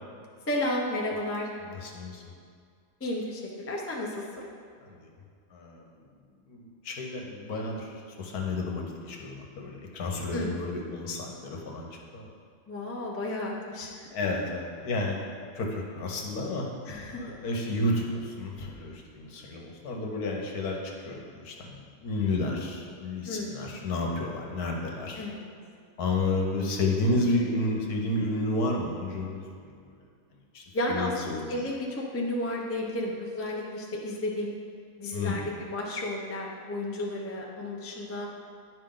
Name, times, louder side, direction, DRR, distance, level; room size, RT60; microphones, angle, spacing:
voice 1, 0.5-1.5 3.0-4.5 10.3-10.5 12.7-14.1 16.9-17.4 23.3-23.7 25.2-25.5 30.7-34.6 35.0-38.3, left 1 dB, 20° left, -3 dB, 0.4 m, -32 dB
voice 2, 1.6-2.2 4.8-5.1 5.5-6.1 6.5-12.3 14.1-15.3 15.5-16.7 17.2-20.8 21.0-25.3 26.0-29.7 30.5-31.5 35.1-35.4, left 2 dB, 60° left, 0 dB, 1.4 m, -31 dB
10.0 x 5.0 x 3.8 m, 2.2 s
omnidirectional pair, 1.9 m